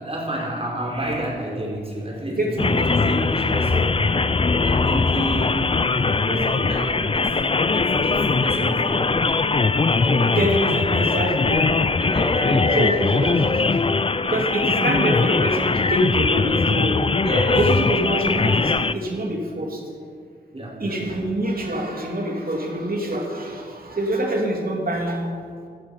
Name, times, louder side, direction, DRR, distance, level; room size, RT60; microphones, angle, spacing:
voice 1, 0.0-4.3 4.5-5.7 6.1-7.3 7.7-9.4 9.8-10.4 11.0-11.1 11.5-11.6 12.0-13.3 15.1-15.4 17.2-17.6 20.5-21.0, equal, 35° right, -2 dB, 5.1 m, -29 dB
voice 2, 2.3-3.0 10.2-11.7 12.7-13.6 14.2-17.0 17.5-19.8 20.8-25.3, right 1 dB, 55° right, 0 dB, 3.1 m, -25 dB
sound 1, 2.6-18.9, left 4 dB, 30° left, 0.5 m, -21 dB
15.5 x 12.5 x 5.8 m, 2.2 s
cardioid pair, 60°, 18 cm